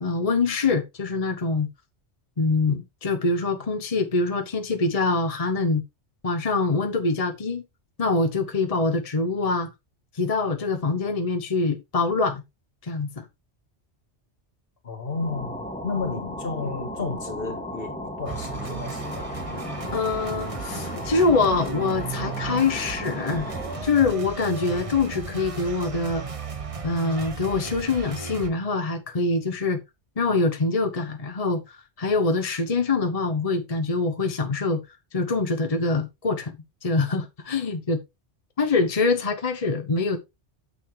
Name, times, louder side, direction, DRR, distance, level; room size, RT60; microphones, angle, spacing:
voice 1, 0.0-1.7 2.4-5.8 6.2-7.6 8.0-9.7 10.1-12.4 12.8-13.3 19.9-23.4 23.8-26.2 26.8-29.8 30.2-34.8 35.1-36.5 36.8-38.0 38.6-40.2, left 3 dB, 35° left, 1.0 m, -24 dB
voice 2, 14.8-19.3, left 4 dB, 55° left, 1.9 m, -32 dB
sound 1, 15.1-23.9, left 1 dB, 5° left, 2.0 m, -35 dB
sound 2, 18.3-28.5, right 4 dB, 30° right, 1.0 m, -35 dB
9.2 x 6.9 x 3.2 m
omnidirectional pair, 1.2 m